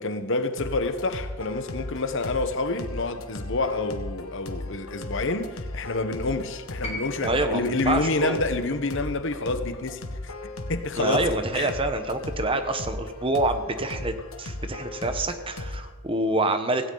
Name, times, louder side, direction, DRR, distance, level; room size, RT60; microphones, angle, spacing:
voice 1, 0.0-10.3 10.7-11.3 11.5-11.7, left 3 dB, 60° left, 1.0 m, -28 dB
sound 1, 0.6-15.9, left 1 dB, 80° left, 1.5 m, -36 dB
sound 2, 6.8-11.0 12.2-12.3, left 2 dB, 30° left, 2.5 m, -42 dB
voice 2, 7.2-8.4 11.0-16.9, right 2 dB, 25° right, 1.1 m, -27 dB
17.0 x 17.0 x 3.9 m
head